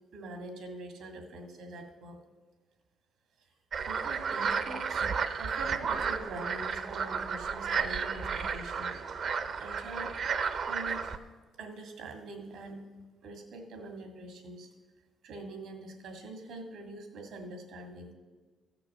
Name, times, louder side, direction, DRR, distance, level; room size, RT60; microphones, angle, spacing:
voice 1, 0.1-2.2 3.4-3.5 3.8-5.1 5.4-9.0 9.6-10.1 10.7-11.1 11.6-12.8 13.2-14.7 15.2-18.1, right 2 dB, 85° right, 4 dB, 2.0 m, -44 dB
sound 1, 3.7-11.2, right 6 dB, 60° right, 0.7 m, -32 dB
13.5 x 6.7 x 6.6 m, 1.3 s
cardioid pair, 90°, 0 cm